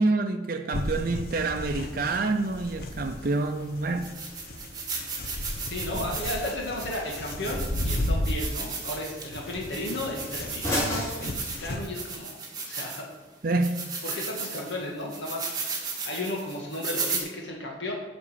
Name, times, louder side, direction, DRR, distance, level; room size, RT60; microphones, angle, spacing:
voice 1, 0.0-4.1 5.9-6.1 13.4-13.8, right 3 dB, 50° right, 0.6 m, -27 dB
sound 1, 0.7-11.9, left 1 dB, 55° left, 0.9 m, -34 dB
sound 2, 2.9-3.0 3.6-3.7 4.0-13.2 13.6-17.2, right 4 dB, 20° right, 1.5 m, -36 dB
sound 3, 4.2-12.2, equal, 15° left, 3.1 m, -38 dB
voice 2, 5.6-12.4 12.7-13.1 14.0-17.9, left 1 dB, 75° left, 1.7 m, -34 dB
7.4 x 5.3 x 6.9 m
head